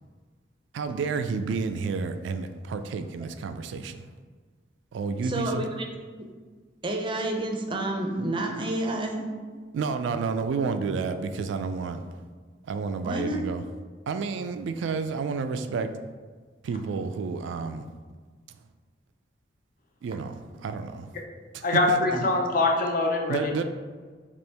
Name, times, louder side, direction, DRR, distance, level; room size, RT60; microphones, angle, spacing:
voice 1, 0.7-4.1 4.9-5.7 9.7-12.0 12.6-13.6 14.1-16.0 16.6-17.9 20.0-21.1 21.5-22.1 23.3-23.6, right 5 dB, 85° right, 9 dB, 0.3 m, -30 dB
voice 2, 5.2-5.9 6.8-9.3 13.0-13.4 22.1-22.2, right 1 dB, 25° right, 2 dB, 0.5 m, -29 dB
voice 3, 21.6-23.6, left 2 dB, 50° left, 1 dB, 0.6 m, -24 dB
4.3 x 3.0 x 3.3 m, 1.5 s
head